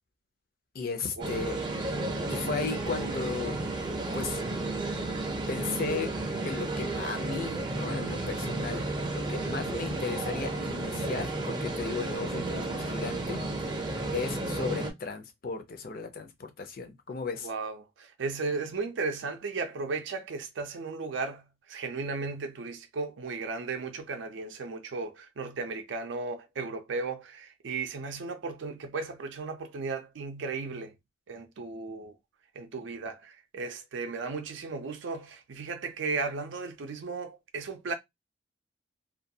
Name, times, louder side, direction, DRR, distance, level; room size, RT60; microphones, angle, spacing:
voice 1, 0.7-1.6 2.3-3.6 4.1-4.4 5.5-6.1 6.4-8.8 9.1-17.5, left 4 dB, 50° left, 0.5 m, -35 dB
sound 1, 1.2-14.9, right 2 dB, 25° right, 0.5 m, -32 dB
voice 2, 17.4-30.9 31.3-32.2 32.5-37.9, right 4 dB, 80° right, 0.4 m, -35 dB
2.3 x 2.2 x 2.7 m
head